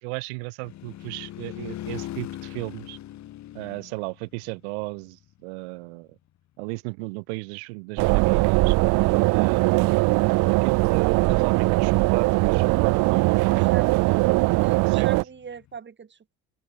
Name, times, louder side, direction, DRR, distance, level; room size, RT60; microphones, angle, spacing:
voice 1, 0.0-3.0 3.5-6.2 6.6-8.8 9.3-13.9 14.9-15.1, right 30 dB, 90° right, 2.6 m, -34 dB
sound 1, 0.6-5.6 15.1-15.8, left 13 dB, 60° left, 1.8 m, -40 dB
sound 2, 8.0-15.2, right 24 dB, 70° right, 0.5 m, -20 dB
voice 2, 13.5-14.3 14.6-16.4, right 6 dB, 35° right, 3.6 m, -41 dB
open air
supercardioid pair, 75°, 32 cm